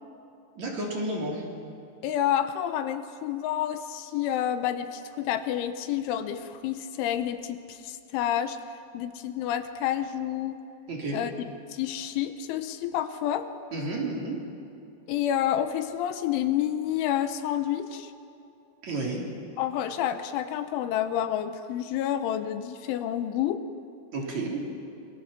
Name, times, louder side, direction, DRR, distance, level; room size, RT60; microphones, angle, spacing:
voice 1, 0.6-1.4 10.9-11.2 13.7-14.4 18.8-19.3 24.1-24.6, right 2 dB, 40° right, -2 dB, 4.4 m, -31 dB
voice 2, 2.0-8.6 8.9-10.6 11.1-11.3 11.7-13.5 15.1-18.1 19.6-23.6, left 10 dB, 85° left, 9 dB, 3.4 m, -29 dB
26.0 x 23.0 x 7.4 m, 2.6 s
omnidirectional pair, 5.5 m